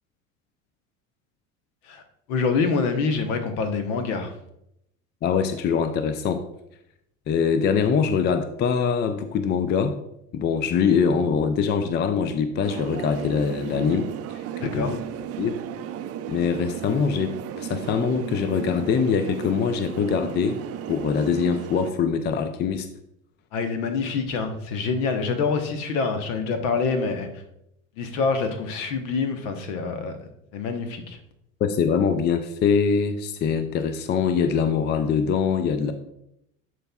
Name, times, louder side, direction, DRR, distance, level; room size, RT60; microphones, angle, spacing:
voice 1, 2.3-4.3 14.6-15.0 23.5-27.4 28.0-30.2 30.5-31.2, left 4 dB, 65° left, 7 dB, 1.1 m, -26 dB
voice 2, 5.2-6.4 7.3-10.0 10.3-15.0 15.4-15.6 16.3-20.6 20.9-22.9 31.6-35.9, left 6 dB, 25° left, 10 dB, 0.4 m, -23 dB
sound 1, 12.6-21.9, right 10 dB, 35° right, 0.5 m, -35 dB
11.0 x 4.3 x 2.3 m, 0.79 s
hypercardioid pair, 80°, 41 cm